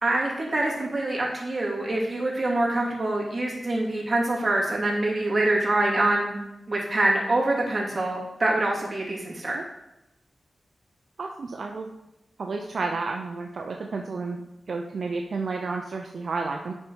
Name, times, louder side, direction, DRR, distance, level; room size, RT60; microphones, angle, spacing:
voice 1, 0.0-6.4 6.7-9.6, right 2 dB, 30° right, -3 dB, 2.5 m, -25 dB
voice 2, 11.2-11.9 12.4-14.4 14.7-16.7, right 4 dB, 65° right, 2 dB, 0.6 m, -31 dB
8.4 x 5.5 x 4.6 m, 0.90 s
wide cardioid pair, 100°, 0 cm